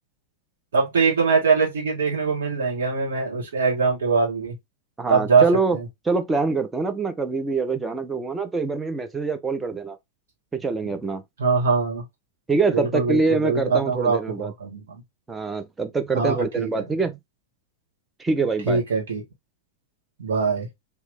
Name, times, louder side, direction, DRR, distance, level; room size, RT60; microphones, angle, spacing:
voice 1, 0.7-4.6 5.1-5.4 5.7-5.8 11.4-12.0 12.7-15.0 16.1-16.7 18.7-19.2 20.2-20.7, right 5 dB, 65° right, 1.6 m, -22 dB
voice 2, 5.0-5.8 6.0-10.0 10.6-11.2 12.5-14.5 15.3-17.2 18.2-18.8, right 3 dB, 10° right, 0.7 m, -24 dB
3.0 x 2.9 x 3.4 m
figure-of-eight pair, 90°, 0 cm